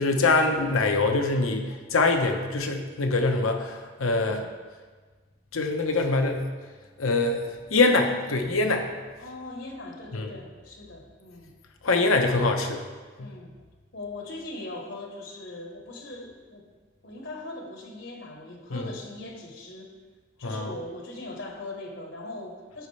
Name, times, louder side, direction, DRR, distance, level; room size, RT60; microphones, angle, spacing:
voice 1, 0.0-4.4 5.5-6.4 7.0-8.9 10.1-10.3 11.8-12.8 13.2-13.3 18.7-18.9 20.4-20.7, left 3 dB, 90° left, 4 dB, 0.9 m, -24 dB
voice 2, 4.1-4.5 9.2-11.5 12.2-12.5 13.2-13.5 13.9-16.7 17.0-19.9 20.4-22.9, left 2 dB, 65° left, 2 dB, 1.2 m, -40 dB
14.0 x 5.2 x 3.3 m, 1.4 s
head